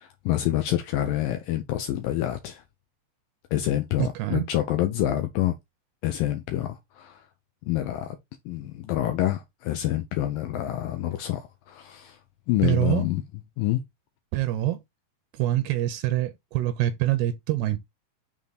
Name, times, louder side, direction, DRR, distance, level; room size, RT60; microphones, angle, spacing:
voice 1, 0.0-2.6 3.5-5.5 6.0-7.2 7.7-8.2 8.5-12.2 12.5-13.2 13.6-13.8, left 13 dB, 85° left, 2.0 m, -27 dB
voice 2, 4.0-4.4 12.6-13.1 14.3-14.8 15.3-17.8, right 14 dB, 80° right, 2.6 m, -25 dB
7.4 x 3.6 x 4.0 m
omnidirectional pair, 4.9 m